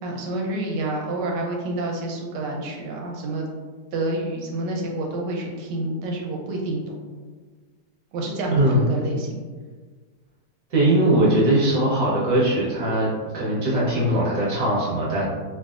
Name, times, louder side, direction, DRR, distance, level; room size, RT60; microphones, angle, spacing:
voice 1, 0.0-3.5 3.9-6.8 8.1-9.4, right 2 dB, 85° right, -1 dB, 1.2 m, -28 dB
voice 2, 8.5-8.9 10.7-15.2, right 1 dB, 65° right, -6 dB, 1.3 m, -20 dB
3.2 x 2.9 x 2.3 m, 1.5 s
omnidirectional pair, 1.8 m